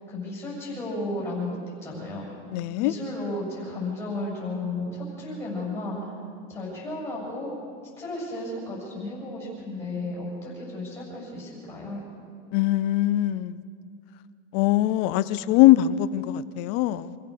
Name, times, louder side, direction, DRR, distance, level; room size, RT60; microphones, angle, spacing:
voice 1, 0.1-2.3 2.8-6.0 6.5-7.5 8.0-12.0, left 2 dB, 5° left, 7.6 m, -33 dB
voice 2, 2.5-2.9 12.5-13.6 14.5-17.2, left 14 dB, 30° left, 0.5 m, -22 dB
27.5 x 16.0 x 6.6 m
supercardioid pair, 165°, 38 cm